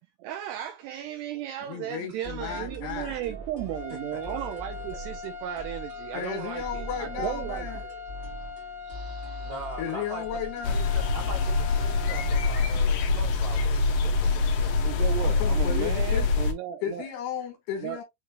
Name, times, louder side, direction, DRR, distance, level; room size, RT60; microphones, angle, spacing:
voice 1, 0.0-7.9 8.8-9.5 14.8-17.1 17.8-18.0, right 12 dB, 85° right, 2.4 m, -35 dB
voice 2, 1.6-3.2 6.1-7.8 9.8-10.8 15.2-16.3 16.8-18.0, left 9 dB, 70° left, 3.1 m, -34 dB
sound 1, 2.2-12.9, right 2 dB, 45° right, 1.3 m, -42 dB
sound 2, 3.6-12.6, left 6 dB, 10° left, 1.1 m, -41 dB
voice 3, 4.3-5.0 9.4-10.3 10.6-14.8, right 2 dB, 65° right, 1.8 m, -42 dB
sound 3, 10.6-16.5, left 4 dB, 90° left, 1.8 m, -25 dB
7.1 x 3.2 x 2.3 m
omnidirectional pair, 5.4 m